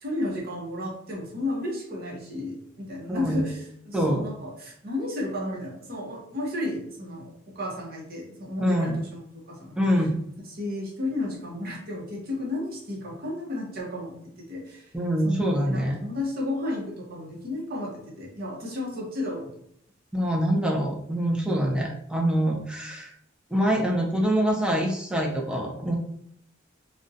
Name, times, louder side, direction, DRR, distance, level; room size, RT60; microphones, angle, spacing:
voice 1, 0.0-9.8 10.5-14.9 15.2-15.4 15.7-19.5, left 1 dB, 50° right, -2 dB, 0.7 m, -33 dB
voice 2, 3.1-3.4 3.9-4.2 8.6-9.0 9.8-10.1 14.9-16.0 20.1-23.1 23.5-25.9, equal, 5° right, 0 dB, 0.4 m, -25 dB
2.4 x 2.1 x 2.6 m, 0.72 s
head